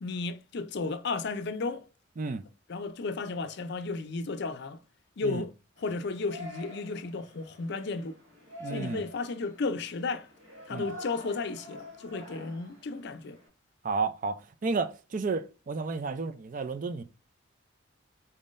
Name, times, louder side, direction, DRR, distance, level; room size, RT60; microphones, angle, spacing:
voice 1, 0.0-1.9 2.7-4.8 5.2-5.5 5.8-8.1 8.7-10.3 10.7-13.4, left 3 dB, 55° left, 0.5 m, -34 dB
Yell, 5.8-13.5, left 2 dB, 70° right, 1.7 m, -47 dB
voice 2, 8.6-9.0 10.7-10.9 13.8-17.0, right 4 dB, 40° right, 0.4 m, -32 dB
4.2 x 3.7 x 2.5 m
head